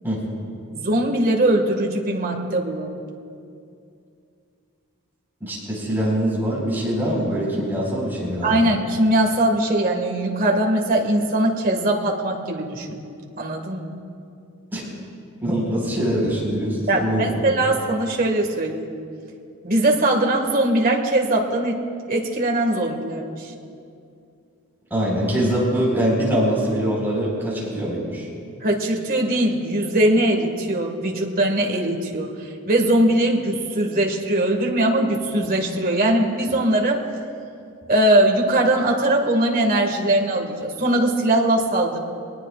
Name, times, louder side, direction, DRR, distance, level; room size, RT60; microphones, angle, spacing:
voice 1, 0.7-3.0 8.4-13.0 13.4-13.9 16.9-18.9 19.6-21.8 22.1-23.5 28.6-37.0 37.9-42.0, right 1 dB, 40° right, 1 dB, 1.9 m, -21 dB
voice 2, 5.4-8.7 14.7-14.8 15.4-17.4 24.9-28.3, equal, 10° right, -5 dB, 4.7 m, -23 dB
23.5 x 19.5 x 2.5 m, 2.5 s
head